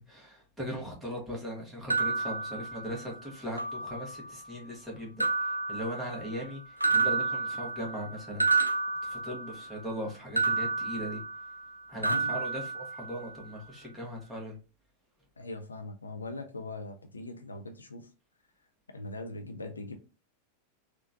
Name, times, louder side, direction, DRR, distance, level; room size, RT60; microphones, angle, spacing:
voice 1, 0.0-8.7 9.0-11.2 11.9-14.6, equal, 5° right, 1.4 m, -39 dB
sound 1, 1.9-3.2 3.6-4.3 5.2-6.5 6.8-9.8 10.4-11.7 12.0-13.4, right 4 dB, 85° right, 0.4 m, -30 dB
voice 2, 15.4-18.1 18.9-20.0, left 2 dB, 75° left, 0.4 m, -41 dB
3.7 x 2.4 x 2.6 m
figure-of-eight pair, 90°, 0 cm